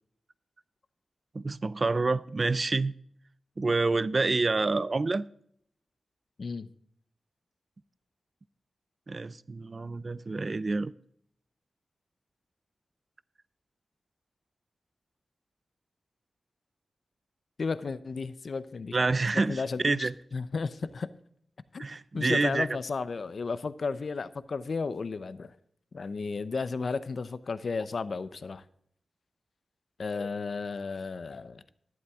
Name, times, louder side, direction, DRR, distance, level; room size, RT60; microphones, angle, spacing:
voice 1, 1.3-2.9 3.6-5.2 9.1-10.9 18.9-20.1 21.8-22.7, right 3 dB, 35° right, 0.4 m, -28 dB
voice 2, 6.4-6.7 17.6-18.9 19.5-21.1 21.7-21.8 22.1-25.5 25.9-28.6 30.0-31.6, left 4 dB, 55° left, 0.6 m, -33 dB
12.0 x 11.0 x 3.6 m
wide cardioid pair, 130°, 0 cm